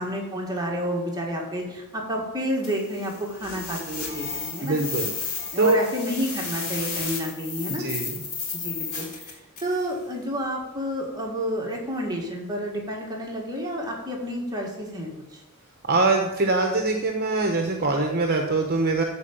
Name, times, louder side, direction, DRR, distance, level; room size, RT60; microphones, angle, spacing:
voice 1, 0.0-4.8 5.5-7.9 8.5-15.4, equal, 20° right, -1 dB, 1.9 m, -30 dB
sound 1, 2.6-9.8, left 5 dB, 45° left, 3.3 m, -33 dB
voice 2, 4.6-5.1 5.6-5.8 7.7-8.1 15.9-19.0, right 3 dB, 45° right, 3 dB, 1.0 m, -23 dB
14.0 x 4.8 x 7.0 m, 0.98 s
head